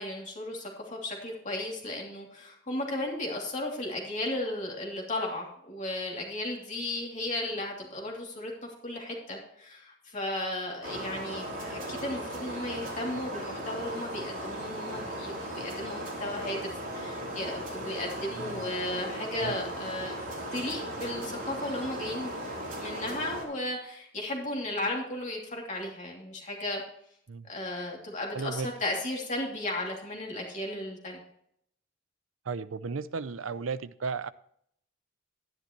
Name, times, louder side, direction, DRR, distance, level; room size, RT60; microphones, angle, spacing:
voice 1, 0.0-8.5 8.8-16.6 16.9-20.2 20.5-22.4 22.8-26.8 27.5-31.2, left 1 dB, 40° left, -1 dB, 2.8 m, -35 dB
sound 1, 10.8-23.4, right 1 dB, 45° right, 3.8 m, -37 dB
voice 2, 18.3-18.7 19.4-19.6 27.3-27.5 28.3-28.7 32.5-34.3, right 4 dB, 90° right, 15 dB, 0.6 m, -34 dB
11.5 x 11.0 x 3.0 m, 0.70 s
head